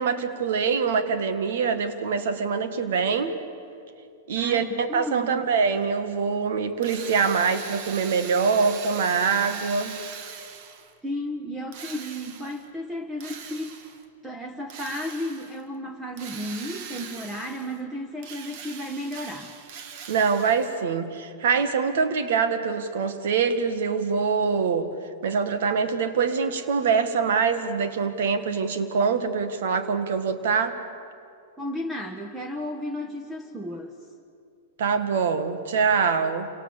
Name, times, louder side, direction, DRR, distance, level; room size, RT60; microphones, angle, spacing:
voice 1, 0.0-3.4 4.3-10.0 20.1-24.9 25.2-30.8 34.8-36.5, right 5 dB, 70° right, 10 dB, 2.0 m, -24 dB
voice 2, 4.3-5.5 11.0-13.8 14.2-19.5 31.6-33.9, equal, 10° right, 4 dB, 1.5 m, -33 dB
Drill, 6.8-11.0 11.7-12.7 13.2-14.1 14.7-15.6 16.2-17.8 18.2-20.8, right 7 dB, 50° right, 1.8 m, -41 dB
28.0 x 18.0 x 7.4 m, 2.4 s
hypercardioid pair, 125°, 0 cm